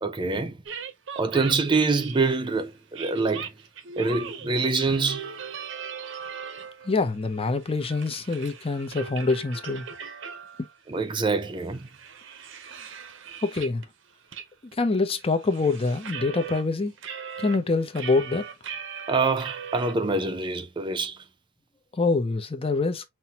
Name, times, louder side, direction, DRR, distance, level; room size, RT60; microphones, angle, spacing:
voice 1, 0.0-0.6 1.2-3.5 4.0-5.3 10.9-11.9 19.1-21.2, right 3 dB, 25° right, 0.5 m, -25 dB
sound 1, 0.7-2.5 2.9-7.0 7.3-10.8 11.1-11.2 11.6-13.9 14.3-14.5 14.7-16.6 17.0-19.9, right 6 dB, 65° right, 0.7 m, -39 dB
voice 2, 6.9-9.9 13.4-13.8 14.8-16.9 17.4-18.5 22.0-23.0, left 3 dB, 30° left, 0.6 m, -25 dB
5.8 x 2.1 x 2.8 m
head